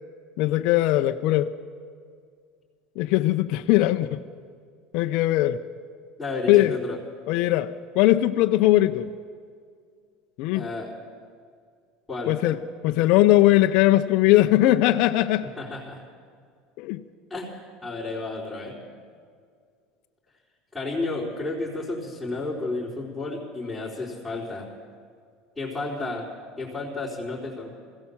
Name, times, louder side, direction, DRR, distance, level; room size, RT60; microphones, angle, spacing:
voice 1, 0.4-1.5 3.0-4.2 4.9-5.6 6.5-6.7 7.3-9.1 10.4-10.6 12.3-12.6 12.8-15.5 16.8-17.0, left 15 dB, 65° left, 7 dB, 0.6 m, -20 dB
voice 2, 6.2-7.0 10.5-10.9 12.1-12.3 15.6-16.0 17.3-18.8 20.7-24.7 25.6-26.3 26.6-27.8, left 2 dB, 5° left, -9 dB, 4.3 m, -32 dB
21.5 x 16.5 x 7.3 m, 2.1 s
supercardioid pair, 120°, 0 cm